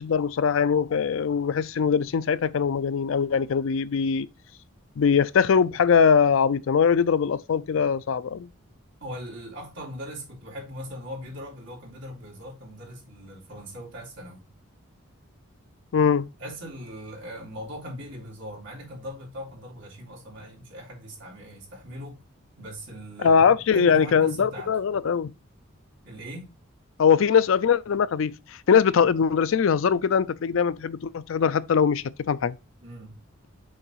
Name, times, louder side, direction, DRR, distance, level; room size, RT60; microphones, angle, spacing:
voice 1, 0.0-4.3 5.0-8.5 15.9-16.3 23.2-25.3 27.0-28.3 28.7-32.5, left 6 dB, 75° left, 0.4 m, -21 dB
voice 2, 9.0-14.5 16.4-22.2 22.6-24.7 26.0-26.5 32.8-33.2, equal, 60° right, 3.2 m, -40 dB
6.4 x 4.0 x 4.5 m
head